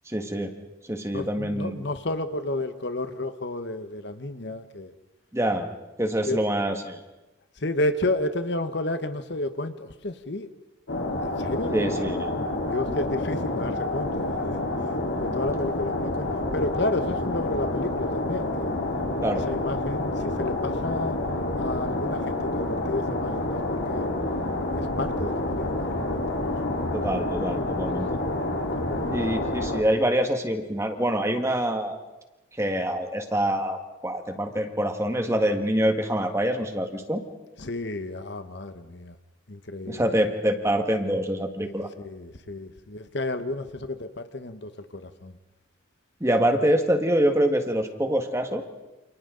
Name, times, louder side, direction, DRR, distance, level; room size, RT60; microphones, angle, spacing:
voice 1, 0.1-0.5 0.8-1.8 5.3-5.7 6.0-7.0 11.7-12.4 19.2-19.5 26.9-28.1 29.1-32.0 32.5-37.2 39.9-41.9 46.2-48.6, right 1 dB, 15° right, 5 dB, 1.6 m, -25 dB
voice 2, 1.1-4.9 6.3-6.5 7.6-10.5 11.4-11.7 12.7-16.3 16.5-18.7 19.3-21.2 21.6-24.1 24.7-26.9 28.1-28.2 28.8-29.2 37.6-39.1 39.5-40.0 42.0-45.4, left 2 dB, 55° left, 10 dB, 1.1 m, -31 dB
sound 1, 10.9-29.8, left 2 dB, 75° left, 3.8 m, -28 dB
29.0 x 28.5 x 3.9 m, 1.0 s
head